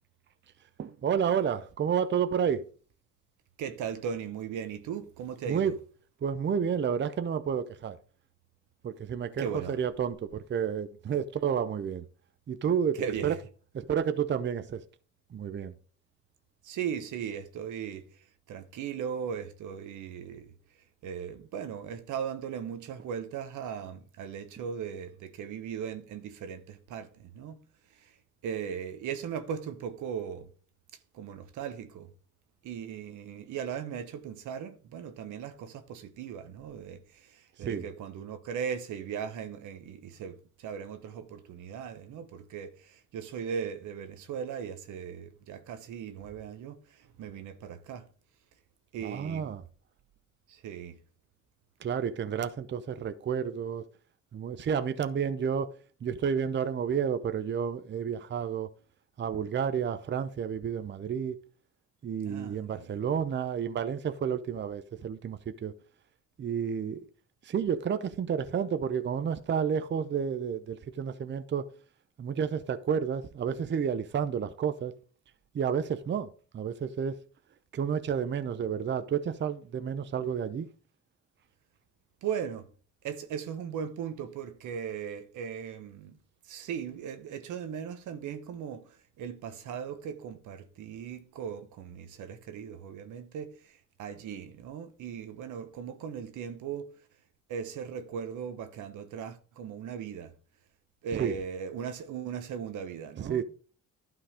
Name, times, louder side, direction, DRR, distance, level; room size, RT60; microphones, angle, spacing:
voice 1, 0.8-2.7 5.5-5.8 6.2-8.0 8.8-12.0 12.5-13.3 13.7-14.8 15.3-15.7 37.6-37.8 49.0-49.6 51.8-53.8 54.3-55.7 56.0-58.7 59.2-61.4 62.0-65.7 66.4-67.1 67.4-71.7 72.2-74.9 75.5-77.2 77.7-80.7 101.2-101.3 103.2-103.4, right 7 dB, 40° right, 0.6 m, -30 dB
voice 2, 3.6-5.7 9.4-9.8 12.9-13.4 16.6-20.5 21.0-27.6 27.9-28.1 28.4-30.5 31.1-32.1 32.6-48.1 48.9-49.6 50.5-51.0 62.2-62.9 82.2-82.7 83.0-86.2 86.4-97.0 97.5-100.3 101.0-103.4, right 7 dB, 80° right, 1.1 m, -38 dB
11.5 x 3.9 x 5.1 m
cardioid pair, 90°, 30 cm